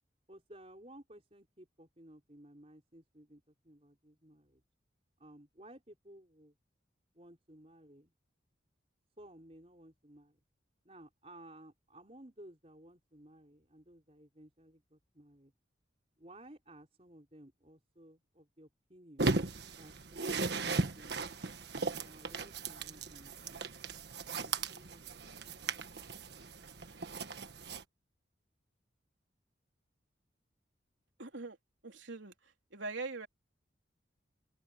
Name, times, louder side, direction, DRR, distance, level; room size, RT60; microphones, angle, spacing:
voice 1, 0.3-4.6 5.2-6.6 7.1-8.1 9.2-10.4 10.8-15.5 16.2-19.4 19.8-21.5 22.0-23.7 24.3-25.0, right 1 dB, 35° right, 4.8 m, -57 dB
sound 1, 19.2-27.8, right 3 dB, 65° right, 1.4 m, -37 dB
voice 2, 31.2-31.6 31.8-33.3, right 3 dB, 85° right, 3.5 m, -42 dB
open air
head